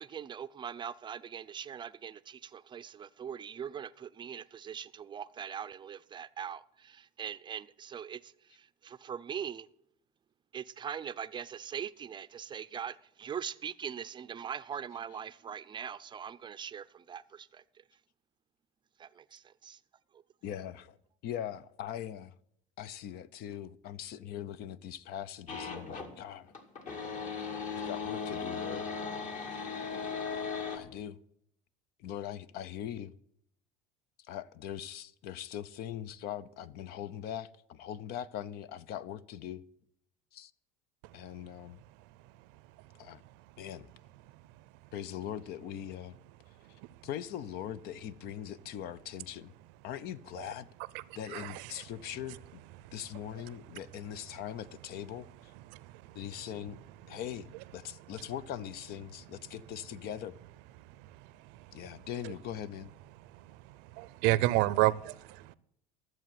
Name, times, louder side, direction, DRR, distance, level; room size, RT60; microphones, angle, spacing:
voice 1, 0.0-9.7 10.5-17.8 19.0-19.8 20.1-20.2, right 8 dB, 25° right, 0.5 m, -42 dB
voice 2, 20.4-21.0 21.2-22.3 22.8-26.5 27.8-28.9 30.7-31.2 32.0-33.1 34.3-39.6 40.3-40.5 41.1-41.8 43.0-43.2 43.6-43.9 44.9-46.2 47.0-49.5 49.8-50.7 51.1-52.6 52.9-55.5 56.1-56.8 57.1-60.4 61.7-62.9, left 10 dB, 60° left, 0.7 m, -41 dB
sound 1, 25.5-26.1 26.5-30.8, left 5 dB, 45° left, 2.0 m, -37 dB
voice 3, 51.3-51.7 55.7-55.8 63.9-65.5, right 18 dB, 75° right, 0.6 m, -28 dB
13.5 x 7.7 x 7.6 m
cardioid pair, 125°, 18 cm